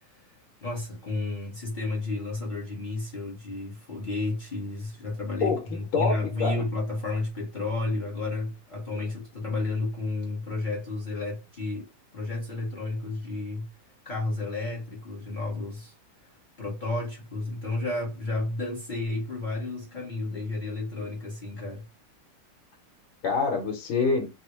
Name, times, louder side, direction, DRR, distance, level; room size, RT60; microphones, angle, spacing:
voice 1, 0.6-11.9 12.1-13.7 14.0-15.9 16.6-21.9, left 2 dB, 45° left, 0.6 m, -32 dB
voice 2, 5.9-6.6 23.2-24.3, left 4 dB, 85° left, 1.8 m, -26 dB
3.8 x 2.0 x 2.9 m
omnidirectional pair, 2.3 m